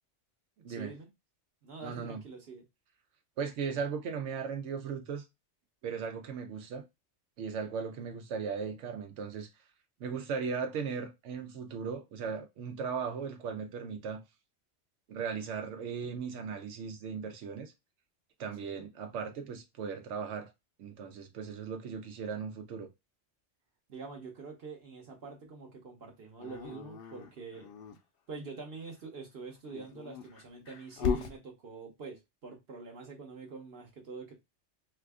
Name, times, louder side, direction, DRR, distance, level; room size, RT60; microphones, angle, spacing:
voice 1, 0.7-1.1 1.6-2.6 18.6-18.8 23.9-27.7 28.3-34.3, right 4 dB, 60° right, 1.0 m, -45 dB
voice 2, 1.8-2.2 3.4-5.2 5.8-6.8 7.4-9.5 10.0-14.2 15.1-17.7 18.4-20.5 20.8-22.9, right 6 dB, 85° right, 0.9 m, -37 dB
Dog, 26.4-28.0 29.6-31.4, left 6 dB, 60° left, 0.7 m, -36 dB
2.8 x 2.4 x 3.4 m
omnidirectional pair, 1.2 m